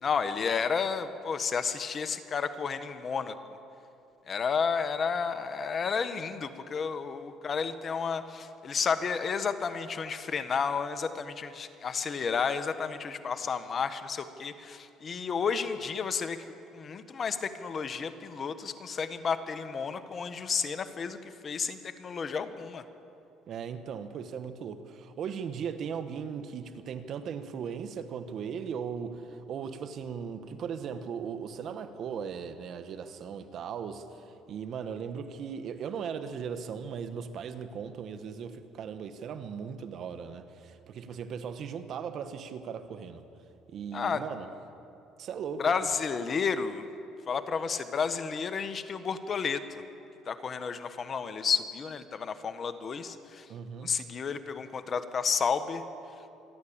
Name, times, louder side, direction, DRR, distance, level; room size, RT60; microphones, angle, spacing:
voice 1, 0.0-3.3 4.3-16.4 16.7-22.8 43.9-44.2 45.6-46.8 47.3-49.8 50.3-53.5 53.8-55.8, left 6 dB, 40° left, 1.3 m, -31 dB
voice 2, 23.5-43.2 43.7-44.5 45.2-45.8 53.5-53.9, right 7 dB, 55° right, 1.4 m, -38 dB
26.0 x 11.5 x 8.8 m
supercardioid pair, 95°, 0 cm